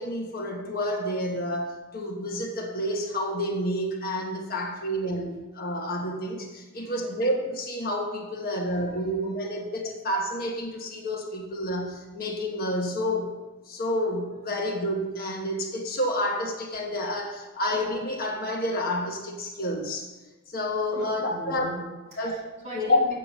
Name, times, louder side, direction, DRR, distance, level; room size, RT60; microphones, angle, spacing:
voice 1, 0.0-20.1 20.5-21.6 22.2-22.4 22.7-23.0, left 1 dB, 45° left, 0 dB, 1.3 m, -29 dB
voice 2, 6.7-7.1 8.4-9.1 20.9-23.2, right 2 dB, 35° right, -5 dB, 2.8 m, -40 dB
7.8 x 6.6 x 6.6 m, 1.1 s
head